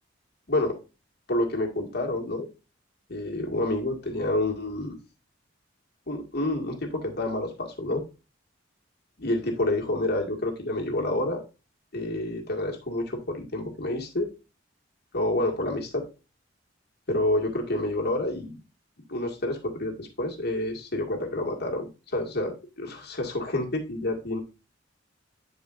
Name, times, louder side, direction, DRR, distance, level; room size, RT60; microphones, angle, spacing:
voice 1, 1.3-2.5 3.1-5.0 6.1-8.0 9.2-11.4 11.9-14.3 15.1-16.0 17.1-18.6 19.1-24.4, left 1 dB, 60° left, 1 dB, 1.9 m, -28 dB
10.5 x 4.9 x 2.5 m, 0.30 s
head